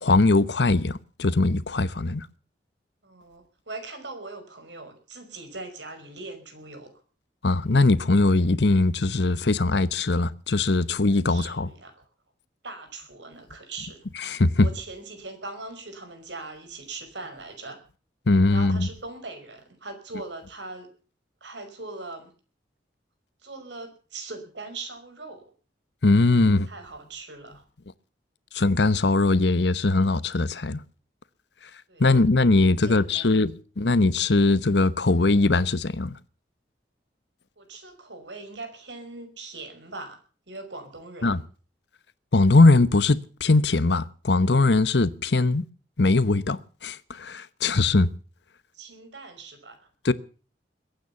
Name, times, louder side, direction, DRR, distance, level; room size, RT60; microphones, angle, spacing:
voice 1, 0.0-2.3 7.4-11.7 14.2-14.7 18.3-18.9 26.0-26.7 28.5-30.8 32.0-36.1 41.2-41.4 42.3-45.6 46.0-48.1 50.0-50.1, left 2 dB, 75° left, 1.0 m, -21 dB
voice 2, 3.0-6.9 11.3-12.0 12.6-14.0 14.6-17.8 18.5-20.9 21.4-22.3 23.4-25.5 26.7-27.6 31.9-32.2 32.8-33.4 37.6-40.2 40.5-41.4 48.7-49.9, right 3 dB, 85° right, 5.4 m, -40 dB
22.0 x 9.3 x 7.0 m
head